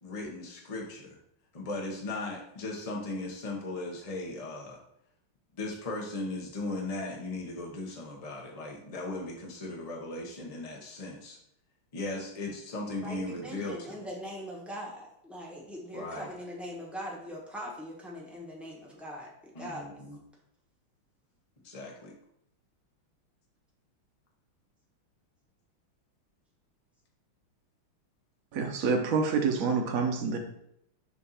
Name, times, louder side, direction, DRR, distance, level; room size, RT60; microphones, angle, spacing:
voice 1, 0.0-1.2 1.5-4.8 5.6-11.4 11.9-14.0 15.9-16.3 19.5-20.2 21.6-22.2, left 2 dB, 60° left, 0 dB, 0.3 m, -37 dB
voice 2, 13.0-19.3 19.6-20.0, equal, ahead, -3 dB, 0.7 m, -41 dB
voice 3, 28.5-30.4, right 4 dB, 55° right, 3 dB, 1.0 m, -27 dB
6.8 x 2.6 x 5.6 m, 0.74 s
omnidirectional pair, 2.4 m